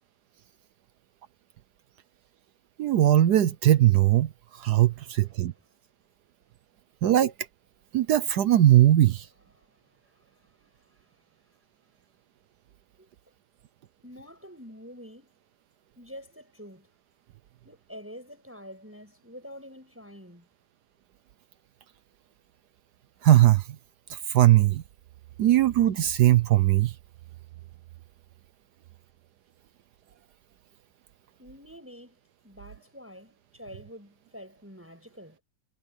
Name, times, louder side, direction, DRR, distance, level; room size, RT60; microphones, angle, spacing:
voice 1, 2.8-4.3 4.6-5.5 7.0-7.3 7.9-9.2 23.2-23.6 24.3-24.8 25.4-26.9, right 13 dB, 65° right, 1.2 m, -19 dB
voice 2, 4.8-5.7 9.5-9.8 10.0-11.2 13.0-13.1 14.0-15.3 16.0-16.9 17.6-20.5 31.4-35.4, equal, 5° right, 7.8 m, -47 dB
omnidirectional pair, 2.1 m